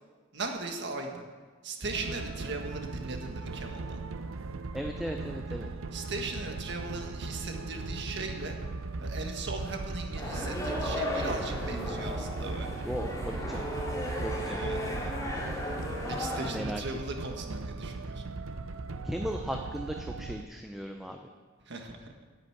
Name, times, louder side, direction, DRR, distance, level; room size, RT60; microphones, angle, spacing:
voice 1, 0.3-1.2 1.6-4.0 5.9-8.6 9.0-12.9 14.6-14.8 16.1-18.2 21.7-22.1, right 3 dB, 55° right, 3 dB, 1.6 m, -38 dB
sound 1, 1.9-20.4, right 3 dB, 75° right, 0.6 m, -38 dB
voice 2, 4.7-5.7 12.8-13.6 14.2-14.6 16.5-16.8 19.0-21.3, equal, ahead, 3 dB, 0.6 m, -36 dB
sound 2, 10.2-16.5, left 1 dB, 15° left, 2.6 m, -35 dB
10.5 x 8.1 x 8.6 m, 1.5 s
head